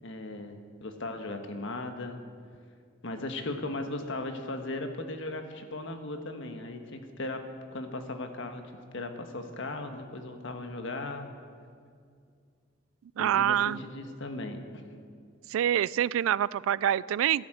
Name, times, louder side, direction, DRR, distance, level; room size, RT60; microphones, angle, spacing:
voice 1, 0.0-2.2 3.0-8.6 8.9-11.3 13.2-14.9, left 2 dB, 65° left, 6 dB, 1.4 m, -37 dB
voice 2, 13.2-13.8 15.5-17.5, right 10 dB, 75° right, 21 dB, 0.3 m, -26 dB
14.0 x 11.0 x 7.8 m, 2.2 s
head